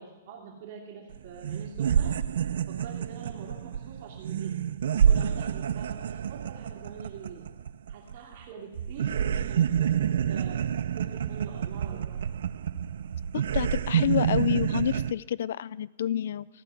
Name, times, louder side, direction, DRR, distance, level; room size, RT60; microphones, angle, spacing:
voice 1, 0.0-2.2 2.7-4.6 4.9-7.5 7.9-12.3, right 5 dB, 45° right, -1 dB, 2.8 m, -44 dB
sound 1, 1.1-1.2 1.4-8.4 8.7-15.1, right 8 dB, 70° right, 0.4 m, -28 dB
voice 2, 13.3-16.5, left 10 dB, 60° left, 21 dB, 0.3 m, -28 dB
14.5 x 4.9 x 7.7 m, 1.1 s
hypercardioid pair, 170°, 0 cm